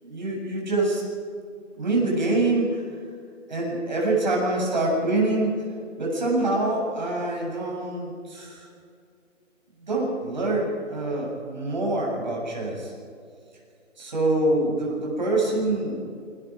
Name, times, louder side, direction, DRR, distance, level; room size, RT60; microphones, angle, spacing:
voice 1, 0.0-1.0 1.7-2.9 3.5-5.6 6.0-8.7 9.8-12.9 14.0-16.1, right 2 dB, 35° right, -2 dB, 7.7 m, -25 dB
28.5 x 24.5 x 5.0 m, 2.3 s
hypercardioid pair, 180°, 38 cm